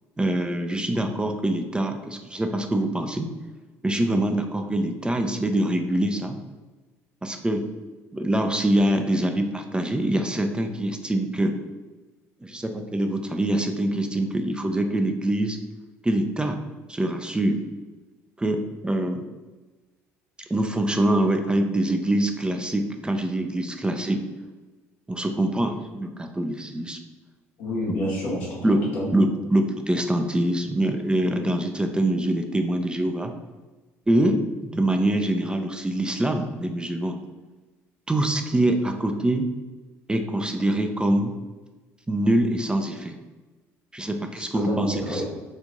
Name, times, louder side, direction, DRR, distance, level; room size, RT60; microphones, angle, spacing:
voice 1, 0.2-3.3 3.8-6.3 7.2-7.7 8.1-11.6 12.4-15.6 16.0-16.6 16.9-17.6 18.4-19.2 20.5-24.2 25.1-27.0 28.6-28.8 29.1-33.3 34.1-34.4 34.7-37.2 38.1-39.5 40.1-41.3 42.1-43.2 43.9-45.2, right 1 dB, 15° right, 5 dB, 0.4 m, -24 dB
voice 2, 27.6-29.2 44.4-45.3, left 1 dB, 75° left, -4 dB, 1.2 m, -29 dB
3.1 x 2.5 x 3.6 m, 1.2 s
hypercardioid pair, 60°, 7 cm